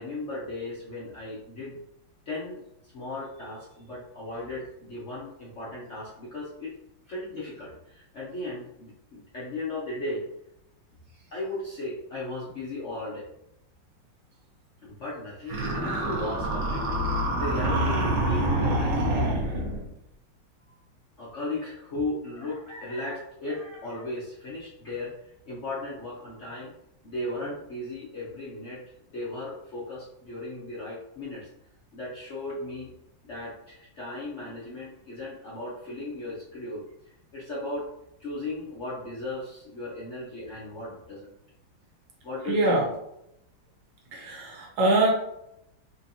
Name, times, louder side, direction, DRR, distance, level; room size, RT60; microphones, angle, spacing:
voice 1, 0.0-1.8 2.3-6.7 7.1-10.2 11.3-13.3 14.8-16.9 17.4-19.3 19.8-19.9 20.7-20.8 21.2-25.1 25.5-26.7 27.0-28.8 29.1-31.5 31.9-32.9 33.2-37.9 38.2-41.3 42.2-42.9, left 2 dB, 50° left, -7 dB, 0.9 m, -36 dB
sound 1, 15.5-19.8, right 1 dB, 50° right, 1.0 m, -26 dB
voice 2, 42.4-42.8 44.1-45.1, right 2 dB, 70° right, -1 dB, 1.6 m, -23 dB
4.2 x 3.0 x 2.7 m, 0.80 s
omnidirectional pair, 2.2 m